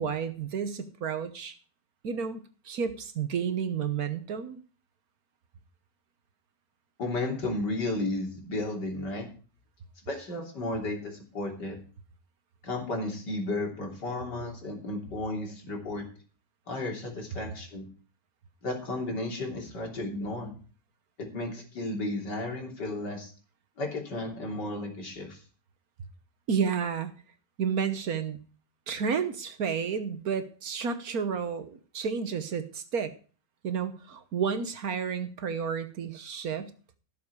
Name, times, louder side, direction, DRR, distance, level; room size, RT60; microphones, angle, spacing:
voice 1, 0.0-1.5 2.0-4.6 26.5-27.1 27.6-28.4 28.9-33.1 33.6-36.7, right 6 dB, 60° right, 10 dB, 1.4 m, -31 dB
voice 2, 7.0-9.3 10.1-11.8 12.6-16.0 16.7-17.9 18.6-20.5 21.2-23.3 23.8-25.4, left 2 dB, 70° left, 1 dB, 3.8 m, -33 dB
17.0 x 7.3 x 4.7 m, 0.38 s
omnidirectional pair, 1.9 m